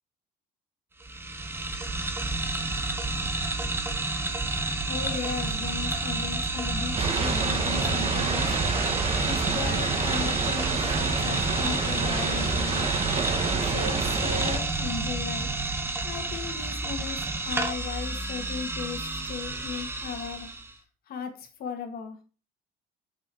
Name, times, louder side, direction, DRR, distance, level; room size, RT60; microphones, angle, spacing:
sound 1, 1.0-20.7, right 2 dB, 15° right, 0.9 m, -30 dB
voice 1, 4.9-8.5 9.2-12.9 13.5-15.5 16.0-19.0 19.2-20.5 21.1-22.2, left 6 dB, 65° left, 5 dB, 1.7 m, -36 dB
sound 2, 6.9-14.6, right 4 dB, 35° right, 1.2 m, -28 dB
6.2 x 4.7 x 4.4 m, 0.36 s
cardioid pair, 110°, 17 cm